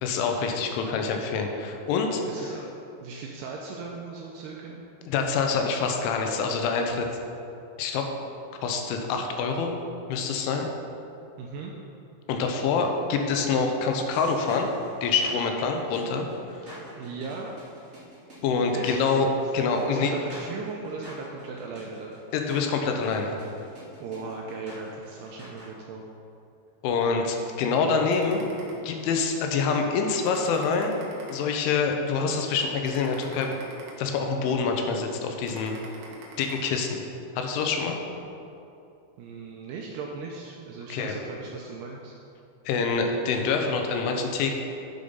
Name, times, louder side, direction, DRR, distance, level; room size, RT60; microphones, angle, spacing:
voice 1, 0.0-2.2 5.1-7.1 7.8-8.1 8.6-9.8 10.1-10.7 12.3-14.7 15.0-16.3 18.4-19.3 19.5-20.1 22.3-23.4 26.8-28.5 28.8-31.0 31.3-33.6 34.0-35.7 36.4-37.0 37.4-38.0 40.9-41.1 42.7-44.5, left 5 dB, 90° left, 3 dB, 3.3 m, -26 dB
voice 2, 2.3-4.8 11.4-11.7 16.6-17.6 18.7-19.0 19.7-22.2 24.0-26.1 39.2-42.2, right 4 dB, 80° right, -1 dB, 2.4 m, -38 dB
sound 1, 14.1-25.7, equal, 45° right, 0.8 m, -47 dB
sound 2, 28.1-29.3 29.7-29.9 30.2-31.9 32.3-32.5 32.8-34.5 34.9-35.1 35.5-36.5, right 3 dB, 65° right, 3.0 m, -46 dB
11.0 x 5.1 x 5.4 m, 2.7 s
omnidirectional pair, 5.4 m